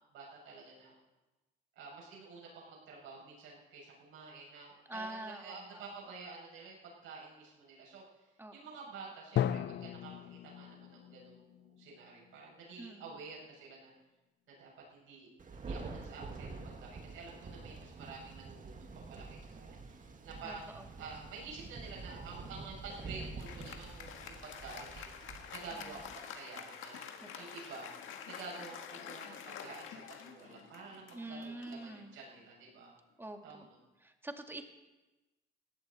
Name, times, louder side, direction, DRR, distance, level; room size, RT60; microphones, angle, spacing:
voice 1, 0.1-0.9 1.7-8.0 8.5-13.9 14.5-25.0 25.5-27.9 28.2-32.9 33.4-33.8, right 4 dB, 90° right, -3 dB, 6.6 m, -50 dB
voice 2, 4.9-5.9 8.4-8.5 12.8-13.1 20.4-20.9 25.8-26.1 27.4-27.6 31.1-32.2 33.2-33.7 34.0-34.6, right 2 dB, 10° right, 4 dB, 2.0 m, -45 dB
Drum, 9.4-13.1, left 10 dB, 65° left, 0.6 m, -37 dB
Thunder, 15.4-26.2, right 3 dB, 40° right, 1.9 m, -47 dB
Applause, 22.9-32.7, left 7 dB, 85° left, 1.8 m, -48 dB
19.0 x 15.5 x 4.2 m, 1.1 s
cardioid pair, 90°, 20 cm